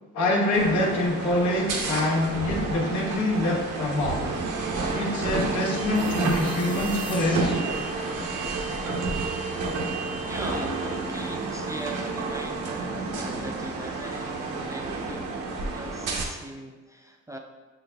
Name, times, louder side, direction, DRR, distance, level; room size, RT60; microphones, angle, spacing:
voice 1, 0.1-4.3 4.9-7.5, left 2 dB, 75° left, -1 dB, 1.1 m, -25 dB
sound 1, 0.5-16.2, right 3 dB, 90° right, 0.8 m, -30 dB
sound 2, 5.9-8.8, left 2 dB, 15° left, 0.8 m, -41 dB
voice 2, 10.2-15.5 15.7-17.4, right 1 dB, 10° right, 2 dB, 0.3 m, -40 dB
5.9 x 3.9 x 2.2 m, 1.2 s
cardioid pair, 90°, 30 cm